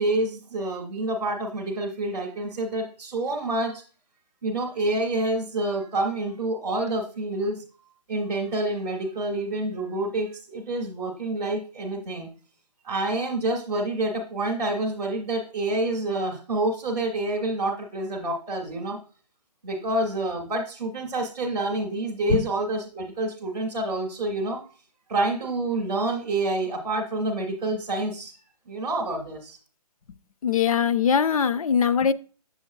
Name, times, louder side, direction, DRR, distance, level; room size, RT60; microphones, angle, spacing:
voice 1, 0.0-3.8 4.4-7.6 8.1-12.3 12.8-19.0 19.6-24.6 25.1-28.3 28.7-29.6, right 2 dB, 5° right, 0.3 m, -28 dB
voice 2, 30.4-32.1, left 7 dB, 60° left, 0.5 m, -21 dB
8.0 x 7.0 x 2.3 m
hypercardioid pair, 170°, 21 cm